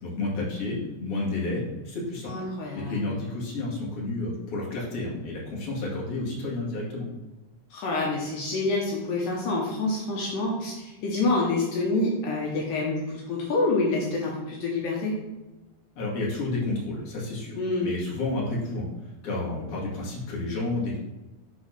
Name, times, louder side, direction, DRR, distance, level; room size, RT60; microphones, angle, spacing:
voice 1, 0.0-2.5 2.7-7.1 16.0-17.5 17.8-18.9 19.2-21.0, left 2 dB, 45° left, -5 dB, 2.6 m, -30 dB
voice 2, 2.3-3.0 7.7-15.1 17.5-17.9, left 2 dB, 75° left, -3 dB, 2.6 m, -27 dB
6.9 x 4.1 x 5.8 m, 1.1 s
omnidirectional pair, 4.0 m